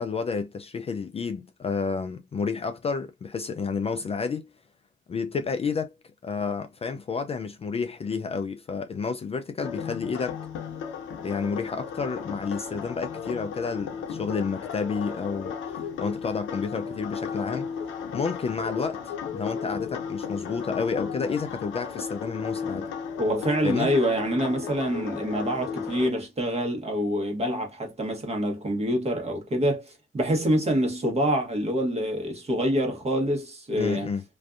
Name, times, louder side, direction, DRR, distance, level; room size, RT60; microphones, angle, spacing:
voice 1, 0.0-4.4 5.1-5.9 6.2-10.4 11.2-17.7 18.1-22.9 23.6-23.9 33.8-34.2, left 5 dB, 30° left, 0.3 m, -30 dB
sound 1, 9.6-26.1, left 6 dB, 80° left, 0.7 m, -34 dB
voice 2, 23.2-34.1, equal, 30° right, 1.1 m, -26 dB
2.5 x 2.3 x 2.4 m
cardioid pair, 90°, 20 cm